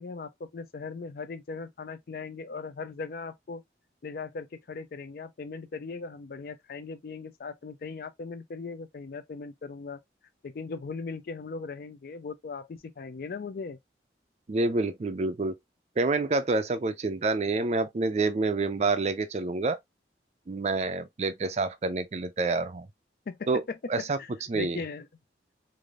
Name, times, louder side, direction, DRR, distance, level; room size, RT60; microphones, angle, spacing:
voice 1, 0.0-3.6 4.0-10.0 10.4-13.8 23.3-25.1, left 4 dB, 55° left, 0.4 m, -39 dB
voice 2, 14.5-15.5 16.0-19.8 20.5-22.9 23.5-23.6 23.9-24.2 24.5-24.8, right 3 dB, 35° right, 0.4 m, -27 dB
3.3 x 2.5 x 2.3 m
head